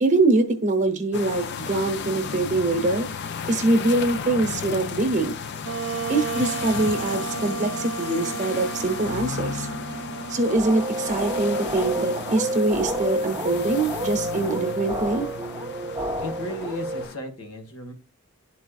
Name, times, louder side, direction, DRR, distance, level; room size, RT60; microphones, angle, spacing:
voice 1, 0.0-3.1 3.5-5.4 6.1-9.7 10.3-15.3, right 2 dB, 35° right, 6 dB, 0.9 m, -23 dB
sound 1, 1.1-17.2, left 6 dB, 50° left, 0.4 m, -34 dB
Wind instrument woodwind instrument, 5.6-13.1, right 5 dB, 65° right, 0.8 m, -34 dB
sound 2, 10.5-17.1, right 1 dB, 20° right, 0.5 m, -29 dB
voice 2, 16.2-17.9, left 1 dB, 80° left, 4 dB, 1.5 m, -35 dB
11.0 x 4.2 x 2.4 m, 0.38 s
head